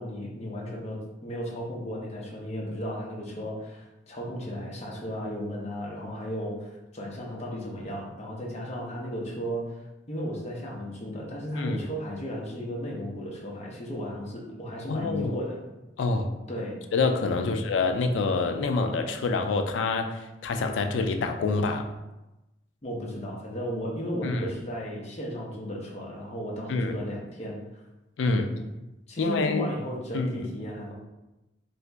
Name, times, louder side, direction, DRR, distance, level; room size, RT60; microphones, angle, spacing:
voice 1, 0.0-15.6 16.5-16.8 22.8-27.6 28.2-28.6 29.1-30.9, equal, 35° left, -3 dB, 0.7 m, -35 dB
voice 2, 14.9-15.4 16.0-16.3 16.9-21.9 24.2-24.5 26.7-27.0 28.2-28.5 29.2-29.7 30.1-30.4, left 3 dB, 90° left, 6 dB, 0.4 m, -26 dB
2.8 x 2.5 x 3.3 m, 0.98 s
head